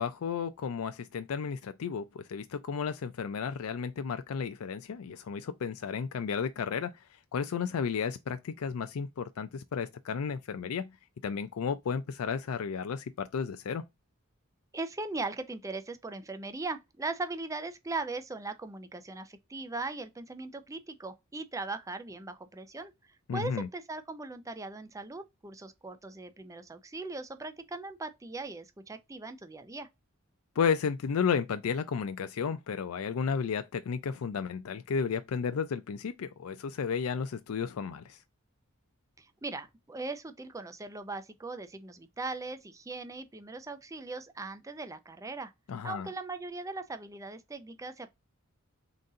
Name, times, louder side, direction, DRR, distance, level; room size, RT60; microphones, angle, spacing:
voice 1, 0.0-6.9 7.3-10.9 11.2-13.8 23.3-23.7 30.6-38.2 45.7-46.1, left 6 dB, 90° left, 0.4 m, -33 dB
voice 2, 14.7-22.9 23.3-29.9 39.2-45.5 45.8-48.1, right 3 dB, 15° right, 0.5 m, -39 dB
3.9 x 2.5 x 3.7 m
head